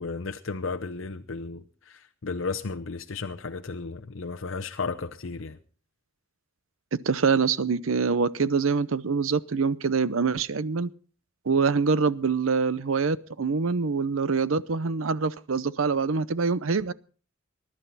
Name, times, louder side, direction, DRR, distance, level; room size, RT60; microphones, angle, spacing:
voice 1, 0.0-5.6, left 4 dB, 70° left, 0.8 m, -34 dB
voice 2, 7.0-10.9 11.5-16.9, right 5 dB, 80° right, 0.7 m, -25 dB
21.0 x 11.5 x 4.1 m
head